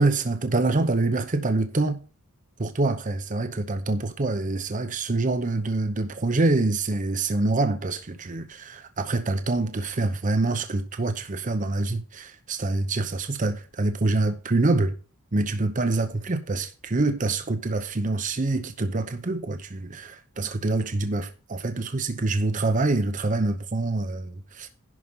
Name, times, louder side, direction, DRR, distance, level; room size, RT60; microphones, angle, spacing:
voice 1, 0.0-2.0 2.6-14.9 15.3-24.7, right 2 dB, 40° right, 0.8 m, -26 dB
11.0 x 5.0 x 5.6 m
head